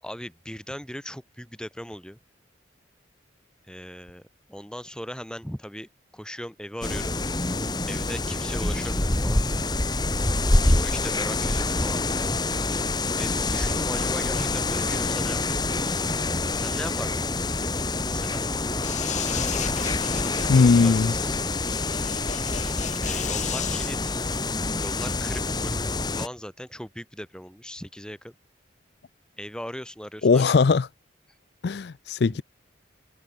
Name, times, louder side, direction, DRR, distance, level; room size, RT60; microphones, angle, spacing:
voice 1, 0.0-2.2 3.7-4.2 4.5-5.9 6.1-7.1 7.9-9.4 10.6-12.4 13.2-15.9 16.5-17.3 18.1-18.4 20.5-21.3 23.0-24.5 24.8-25.8 26.1-28.3 29.4-30.4 32.3-32.4, equal, 5° left, 7.6 m, -38 dB
sound 1, 6.8-26.3, left 2 dB, 20° left, 1.6 m, -26 dB
sound 2, 18.8-23.9, left 5 dB, 40° left, 4.4 m, -34 dB
voice 2, 20.5-21.1 30.2-30.9 31.6-32.4, left 4 dB, 55° left, 0.4 m, -19 dB
head